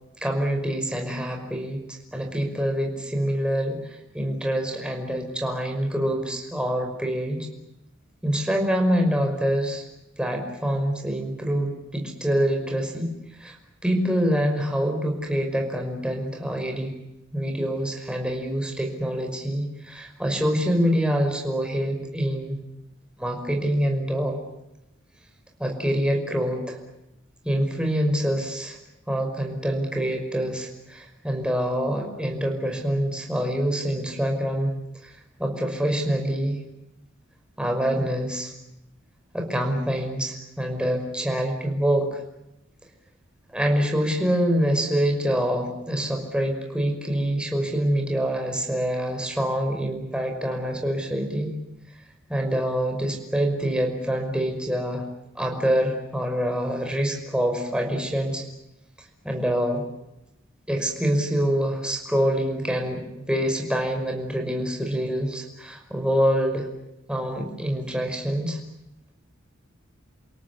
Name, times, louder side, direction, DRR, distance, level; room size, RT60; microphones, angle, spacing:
voice 1, 0.2-7.5 8.2-9.8 10.2-13.6 13.8-16.9 17.3-22.6 23.2-24.4 25.6-26.8 27.4-28.8 29.1-34.7 35.0-35.1 35.4-36.6 37.6-38.5 39.3-42.2 43.5-51.6 52.3-55.0 55.3-58.4 59.2-59.8 60.7-66.7 67.1-68.6, equal, 5° right, 2 dB, 5.5 m, -25 dB
29.5 x 18.0 x 9.6 m, 0.87 s
head